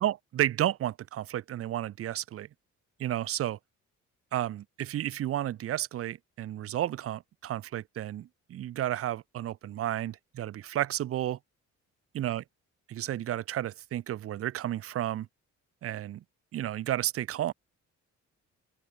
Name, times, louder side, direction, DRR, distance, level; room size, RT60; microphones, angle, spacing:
voice 1, 0.0-2.5 3.0-3.6 4.3-11.4 12.1-12.4 12.9-15.3 15.8-16.2 16.5-17.5, right 12 dB, 50° right, 0.5 m, -32 dB
open air
cardioid pair, 90°, 30 cm